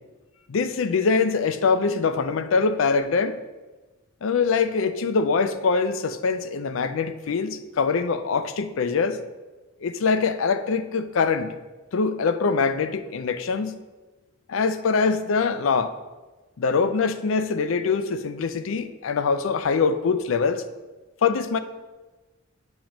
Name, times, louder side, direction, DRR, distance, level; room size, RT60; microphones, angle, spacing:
voice 1, 0.5-3.4 4.2-9.2 9.8-11.6 11.9-13.8 14.5-15.9 16.6-20.6 21.2-21.6, left 5 dB, 75° left, 0.4 m, -23 dB
8.8 x 3.0 x 5.1 m
head